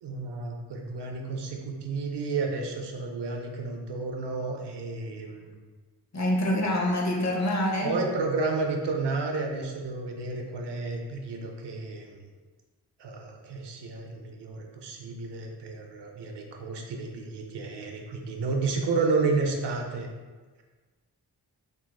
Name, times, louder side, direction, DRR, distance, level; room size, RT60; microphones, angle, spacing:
voice 1, 0.0-5.5 7.8-12.2 13.0-20.1, right 3 dB, 75° right, 2 dB, 0.6 m, -31 dB
voice 2, 6.1-8.0, left 1 dB, 40° left, -1 dB, 0.7 m, -26 dB
3.0 x 2.6 x 2.2 m, 1.3 s
cardioid pair, 45°, 42 cm